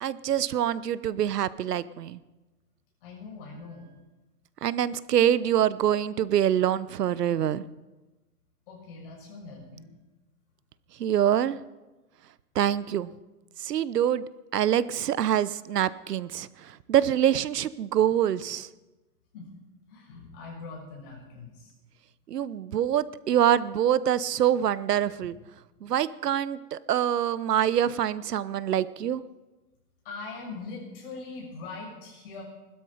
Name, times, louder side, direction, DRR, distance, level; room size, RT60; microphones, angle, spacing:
voice 1, 0.0-2.2 4.6-7.6 11.0-11.6 12.5-13.1 13.6-18.7 22.3-25.4 25.8-29.2, right 10 dB, 85° right, 17 dB, 1.0 m, -25 dB
voice 2, 3.0-4.0 8.7-10.0 19.3-19.5 19.9-21.7 30.0-32.4, left 3 dB, 35° left, -2 dB, 6.9 m, -42 dB
20.5 x 12.5 x 5.0 m, 1.1 s
hypercardioid pair, 170°, 46 cm